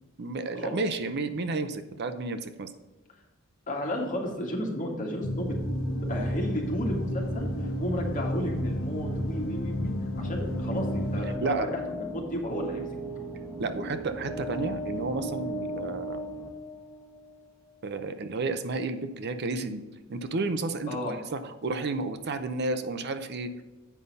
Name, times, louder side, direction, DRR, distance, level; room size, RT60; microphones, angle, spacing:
voice 1, 0.2-2.7 11.4-11.7 13.6-16.2 17.8-19.8 20.1-23.5, right 3 dB, 55° right, 10 dB, 0.6 m, -31 dB
voice 2, 3.7-5.6 6.0-7.5 7.8-12.9 20.9-21.2, left 1 dB, 40° left, 0 dB, 1.9 m, -33 dB
sound 1, 5.2-11.4, equal, 85° left, 1.1 m, -31 dB
sound 2, 5.6-15.5, right 1 dB, 35° right, 1.7 m, -42 dB
sound 3, 10.5-17.4, equal, 10° left, 1.5 m, -38 dB
8.4 x 5.5 x 5.3 m, 1.1 s
head